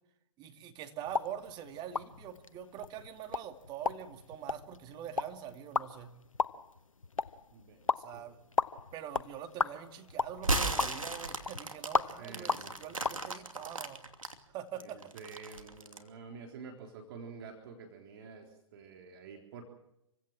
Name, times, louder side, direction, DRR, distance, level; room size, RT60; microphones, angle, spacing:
voice 1, 0.4-6.1 8.0-8.4 8.9-14.0 14.5-15.1, right 9 dB, 25° right, 6 dB, 2.7 m, -44 dB
sound 1, 1.1-13.2, left 4 dB, 80° left, 1.1 m, -37 dB
voice 2, 7.5-8.3 12.2-12.7 14.8-19.6, right 5 dB, 45° right, 3 dB, 3.9 m, -49 dB
sound 2, 10.4-14.3 14.8-16.1, right 2 dB, 85° right, 2.8 m, -35 dB
27.5 x 16.5 x 7.5 m, 0.82 s
figure-of-eight pair, 120°, 17 cm